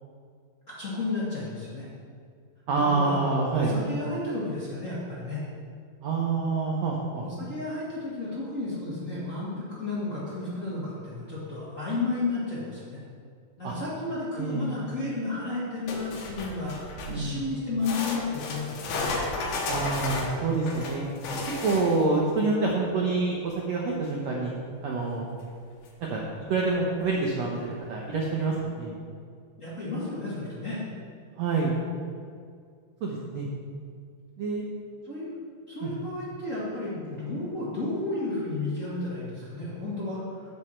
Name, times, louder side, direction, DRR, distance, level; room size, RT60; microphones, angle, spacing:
voice 1, 0.7-1.9 2.7-5.4 7.2-13.0 13.6-19.1 29.6-30.8 35.0-35.3 35.7-40.5, left 2 dB, 30° left, -9 dB, 1.4 m, -32 dB
voice 2, 2.7-3.7 6.0-7.2 13.6-13.7 14.4-14.7 17.1-17.4 19.7-21.0 21.6-24.5 24.8-25.2 26.1-26.2 26.5-29.0 31.4-31.7 33.0-33.5 34.4-34.6 35.8-35.9, right 3 dB, 85° right, -2 dB, 1.5 m, -27 dB
sound 1, 15.9-17.3 17.8-22.2 25.4-25.5 25.9-26.0 26.7-26.8, left 3 dB, 85° left, 3.1 m, -33 dB
9.4 x 7.8 x 4.4 m, 2.2 s
omnidirectional pair, 4.4 m